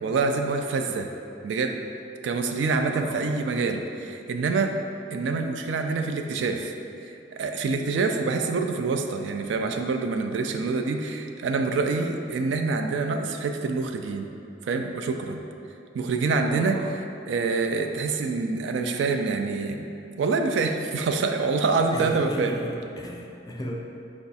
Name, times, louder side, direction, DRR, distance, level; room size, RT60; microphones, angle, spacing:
voice 1, 0.0-1.1 1.4-1.8 2.2-4.8 5.1-6.7 7.4-14.3 14.7-15.4 15.9-16.8 17.3-19.9 20.2-22.5, right 4 dB, 70° right, 5 dB, 0.3 m, -26 dB
voice 2, 2.9-3.2 15.9-16.0 16.5-16.9 21.9-23.7, left 1 dB, 20° left, 0 dB, 0.3 m, -35 dB
4.6 x 2.3 x 4.0 m, 2.8 s
head